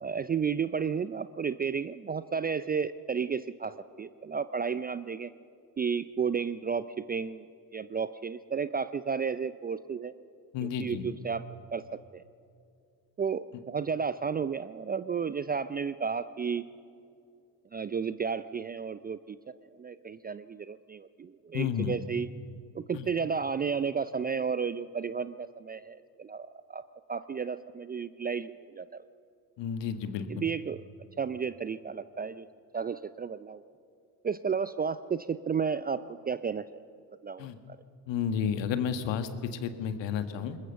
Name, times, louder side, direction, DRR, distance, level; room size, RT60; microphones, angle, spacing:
voice 1, 0.0-5.3 5.8-7.4 7.7-10.1 10.6-11.4 11.7-11.8 12.1-12.2 13.2-16.6 17.7-19.4 19.8-22.3 22.7-26.8 27.1-29.0 30.3-30.8 31.2-32.5 32.7-33.6 34.2-36.8 37.2-37.5, right 6 dB, 20° right, 15 dB, 0.4 m, -32 dB
voice 2, 10.5-11.0 21.5-21.9 22.9-23.1 29.6-30.4 37.4-37.6 38.1-40.6, left 8 dB, 60° left, 10 dB, 1.7 m, -31 dB
21.0 x 20.5 x 7.0 m, 2.5 s
hypercardioid pair, 65°, 50 cm